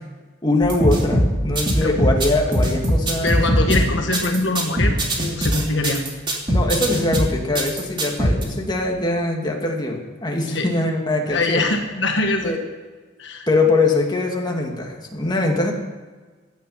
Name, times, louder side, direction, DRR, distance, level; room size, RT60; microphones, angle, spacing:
voice 1, 0.4-3.9 6.5-11.6 12.4-12.6 13.5-15.7, left 2 dB, 20° left, 0 dB, 2.3 m, -22 dB
sound 1, 0.6-8.4, equal, 25° right, 2.8 m, -21 dB
voice 2, 3.2-6.0 10.5-10.7 11.3-12.5 13.2-13.5, left 2 dB, 65° left, 4 dB, 1.5 m, -23 dB
16.5 x 11.5 x 5.7 m, 1.4 s
head